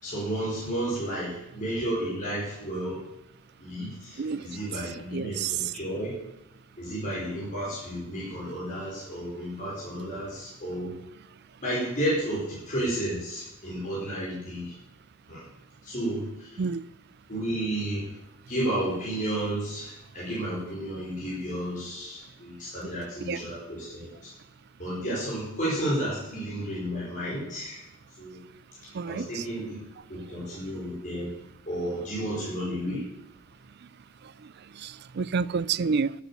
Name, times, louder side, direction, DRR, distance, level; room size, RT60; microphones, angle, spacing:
voice 1, 0.0-3.0 3.6-6.2 6.8-10.9 11.6-14.7 15.3-15.4 15.8-16.6 17.3-18.1 18.5-24.3 24.8-27.8 28.2-28.4 29.1-29.8 30.1-31.3 31.7-33.0, right 1 dB, 40° left, 4.8 m, -32 dB
voice 2, 5.1-5.5 16.6-16.8 23.3-23.4 28.9-29.4 34.8-36.1, right 5 dB, 50° right, 0.4 m, -29 dB
12.5 x 8.6 x 6.9 m
head